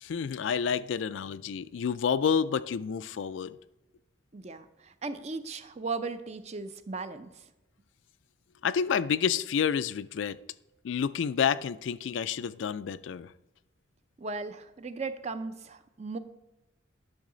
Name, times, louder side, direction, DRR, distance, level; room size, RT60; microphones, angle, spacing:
voice 1, 0.0-3.6 8.6-10.4 10.8-13.3, left 7 dB, 75° left, 0.4 m, -29 dB
voice 2, 4.3-7.3 14.2-16.2, right 4 dB, 35° right, 0.5 m, -37 dB
10.5 x 6.3 x 3.8 m
head